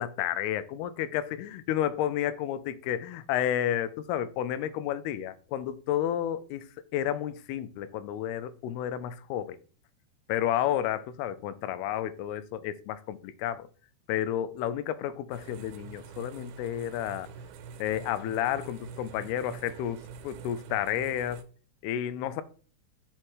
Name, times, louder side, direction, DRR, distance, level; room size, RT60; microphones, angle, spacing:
voice 1, 0.0-6.7 6.9-9.6 10.3-13.7 14.1-17.3 17.8-21.4 21.8-22.4, left 11 dB, 90° left, 2.6 m, -31 dB
sound 1, 15.3-21.4, right 6 dB, 85° right, 2.5 m, -46 dB
10.5 x 4.3 x 3.1 m
omnidirectional pair, 4.5 m